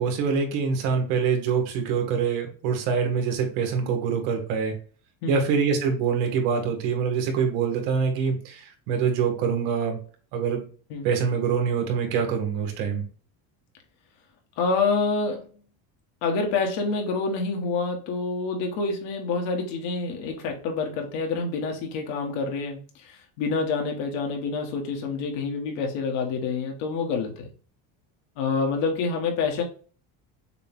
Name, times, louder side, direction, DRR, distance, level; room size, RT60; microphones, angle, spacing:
voice 1, 0.0-4.7 5.3-10.0 10.3-10.7 11.0-13.0, right 6 dB, 85° right, 4 dB, 1.5 m, -25 dB
voice 2, 14.6-15.5 16.2-27.5 28.4-29.6, left 4 dB, 75° left, 2 dB, 1.5 m, -27 dB
6.7 x 2.3 x 3.5 m, 0.41 s
cardioid pair, 145°, 44 cm